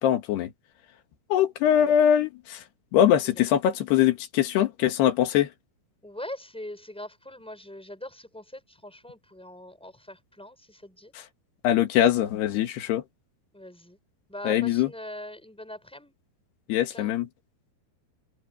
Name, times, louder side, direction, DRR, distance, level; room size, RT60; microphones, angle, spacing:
voice 1, 0.0-0.5 1.3-2.6 2.9-5.5 11.6-13.0 14.5-14.9 16.7-17.3, left 10 dB, 85° left, 3.8 m, -22 dB
voice 2, 6.0-11.1 13.5-14.0 14.3-16.1 16.9-17.1, left 1 dB, ahead, 6.3 m, -42 dB
omnidirectional pair, 4.6 m